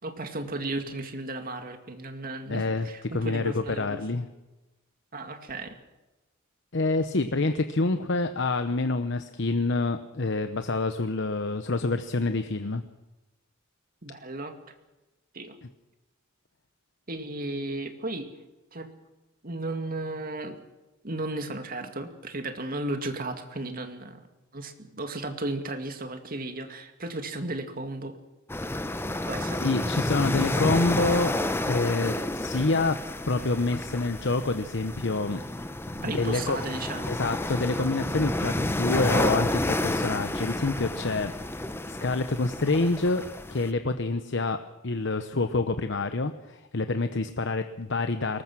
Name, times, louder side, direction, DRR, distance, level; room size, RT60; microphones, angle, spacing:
voice 1, 0.0-4.0 5.1-5.7 14.0-14.5 15.3-15.6 17.1-18.3 18.7-18.9 19.4-20.6 21.0-24.3 24.5-28.2 29.3-29.7 36.0-37.1, right 2 dB, 45° right, 6 dB, 2.2 m, -34 dB
voice 2, 2.5-2.9 3.1-4.3 6.7-12.8 29.5-31.3 31.7-33.0 33.3-35.4 35.9-36.6 37.1-43.2 43.5-48.4, left 3 dB, 60° left, 9 dB, 0.9 m, -27 dB
sound 1, 28.5-43.7, left 1 dB, 10° left, 0.8 m, -30 dB
23.0 x 20.0 x 6.2 m, 1.1 s
head